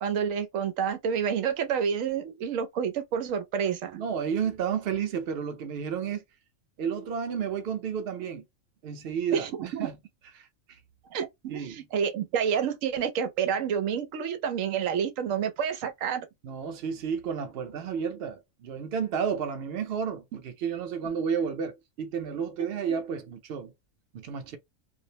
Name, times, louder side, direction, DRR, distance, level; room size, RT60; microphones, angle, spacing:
voice 1, 0.0-4.0 9.3-9.9 11.1-16.3 22.8-22.9, right 7 dB, 90° right, 1.0 m, -29 dB
voice 2, 4.0-6.2 6.8-8.4 8.8-9.9 10.7-10.8 11.5-11.8 16.4-23.7 24.1-24.6, right 7 dB, 60° right, 0.8 m, -31 dB
2.5 x 2.0 x 2.7 m
omnidirectional pair, 1.3 m